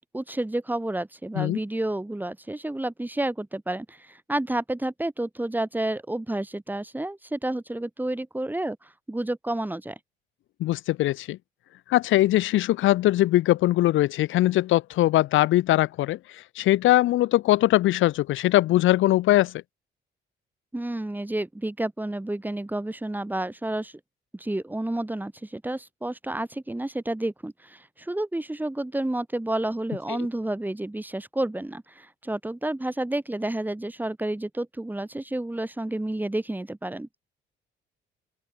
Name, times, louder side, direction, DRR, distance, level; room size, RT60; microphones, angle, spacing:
voice 1, 0.1-10.0 20.7-23.9 24.3-37.1, right 1 dB, 10° right, 1.6 m, -30 dB
voice 2, 10.6-11.4 11.9-19.5 30.1-30.3, left 15 dB, 80° left, 0.7 m, -21 dB
open air
cardioid pair, 90°, 20 cm